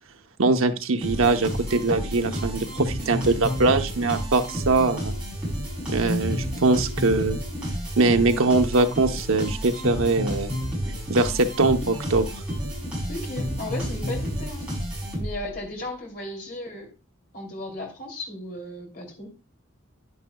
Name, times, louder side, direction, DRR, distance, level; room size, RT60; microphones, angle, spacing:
voice 1, 0.4-5.1 5.9-7.4 8.0-10.5 11.1-12.3, right 3 dB, 80° right, 0.9 m, -22 dB
sound 1, 1.0-15.6, equal, 5° right, 6.3 m, -30 dB
voice 2, 13.1-14.7 15.1-16.9 17.3-19.3, left 1 dB, 45° left, 3.0 m, -35 dB
10.5 x 9.9 x 2.3 m
head